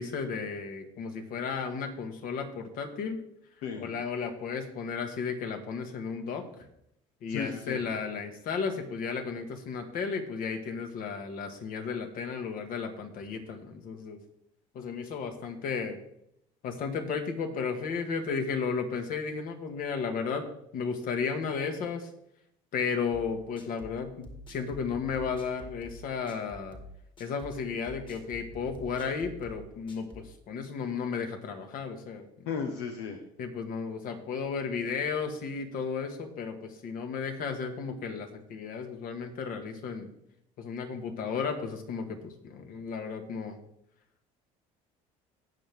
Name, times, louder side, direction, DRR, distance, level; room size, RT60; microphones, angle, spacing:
voice 1, 0.0-3.2 3.8-6.7 7.2-14.2 14.7-16.0 16.6-20.5 20.7-22.1 22.7-26.8 27.2-32.3 33.4-40.1 40.6-43.6, left 5 dB, 65° left, 5 dB, 2.0 m, -34 dB
voice 2, 7.3-7.8 32.5-33.2, left 6 dB, 85° left, 4 dB, 1.2 m, -34 dB
sound 1, 23.1-30.3, left 1 dB, 30° left, 2.3 m, -47 dB
18.0 x 6.3 x 3.7 m, 0.76 s
supercardioid pair, 100°, 16 cm